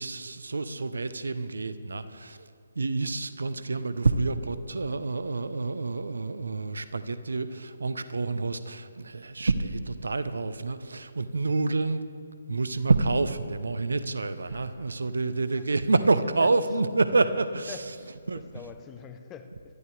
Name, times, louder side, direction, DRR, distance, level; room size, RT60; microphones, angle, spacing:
voice 1, 0.0-2.5 2.7-12.0 12.5-17.8 18.3-18.4, right 3 dB, 65° right, 0.8 m, -28 dB
voice 2, 14.5-14.9 15.5-16.6 17.1-19.7, left 7 dB, 15° left, 0.8 m, -46 dB
21.5 x 13.5 x 3.5 m
figure-of-eight pair, 140°, 0 cm